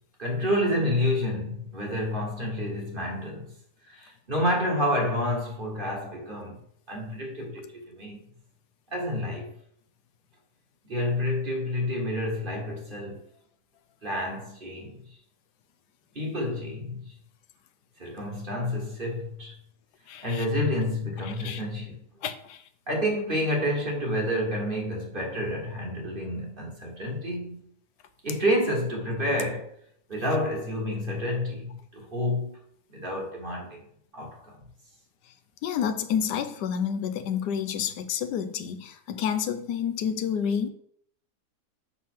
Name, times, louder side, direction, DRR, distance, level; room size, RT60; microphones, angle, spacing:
voice 1, 0.2-3.5 3.8-6.6 6.9-8.2 8.9-9.5 10.9-13.2 14.0-15.0 16.1-17.1 18.0-19.6 20.2-22.0 22.9-27.6 28.2-29.7 30.1-31.7 31.9-32.6 32.9-33.8 34.1-34.6, left 1 dB, 35° right, 1.4 m, -29 dB
voice 2, 20.1-20.5 21.2-21.6 22.2-22.7 35.6-40.7, left 8 dB, 85° left, 1.2 m, -29 dB
5.6 x 4.2 x 6.0 m
omnidirectional pair, 1.8 m